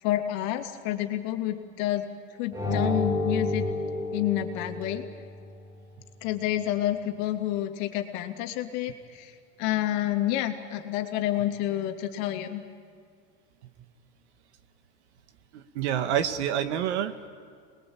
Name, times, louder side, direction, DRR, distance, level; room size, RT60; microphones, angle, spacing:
voice 1, 0.0-2.1 2.4-3.7 4.1-5.0 6.2-9.3 9.6-12.6, left 13 dB, 55° left, 5 dB, 2.6 m, -29 dB
sound 1, 2.5-5.2, left 2 dB, 10° right, 4.4 m, -29 dB
voice 2, 15.5-17.3, right 10 dB, 75° right, 10 dB, 1.9 m, -28 dB
27.5 x 21.0 x 8.8 m, 2.2 s
supercardioid pair, 130°, 34 cm